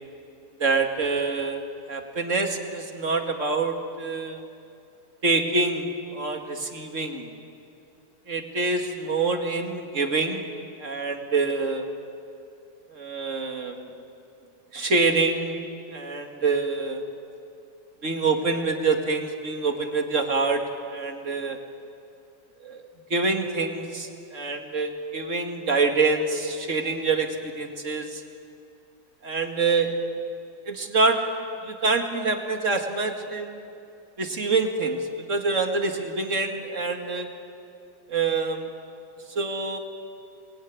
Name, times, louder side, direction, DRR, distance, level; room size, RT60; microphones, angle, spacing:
voice 1, 0.6-4.5 5.2-7.3 8.3-10.5 10.8-11.9 12.9-13.9 14.7-15.6 15.9-17.0 18.0-21.6 22.6-22.8 23.1-28.2 29.2-29.9 30.7-31.2 31.6-33.6 34.2-37.3 38.1-38.6 39.3-39.8, right 3 dB, 45° right, 4 dB, 2.4 m, -26 dB
28.5 x 20.5 x 9.6 m, 2.5 s
omnidirectional pair, 1.8 m